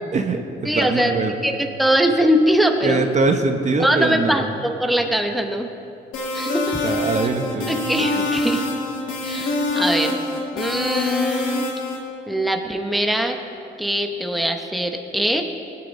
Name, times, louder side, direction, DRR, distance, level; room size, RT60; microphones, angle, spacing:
voice 1, 0.1-1.3 2.8-4.5 6.8-7.7, right 3 dB, 35° right, 5 dB, 1.0 m, -22 dB
voice 2, 0.6-3.0 3.8-5.7 6.3-6.8 7.7-8.7 9.2-10.1 10.6-11.7 12.3-13.4 13.8-15.4, equal, ahead, 3 dB, 1.1 m, -22 dB
sound 1, 6.1-12.0, left 2 dB, 80° left, 2.6 m, -24 dB
19.0 x 8.9 x 4.2 m, 2.8 s
cardioid pair, 90°, 20 cm